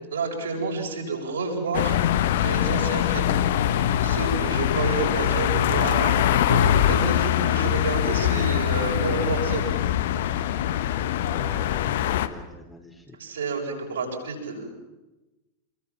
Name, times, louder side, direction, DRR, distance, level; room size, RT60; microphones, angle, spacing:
voice 1, 0.1-3.3 4.0-9.6 13.2-14.8, right 3 dB, 65° right, 2 dB, 7.1 m, -29 dB
sound 1, 1.7-12.3, left 10 dB, 55° left, 1.4 m, -23 dB
voice 2, 11.2-13.2, left 2 dB, 5° left, 2 dB, 4.7 m, -43 dB
28.0 x 23.5 x 7.4 m, 1.0 s
figure-of-eight pair, 90°, 0 cm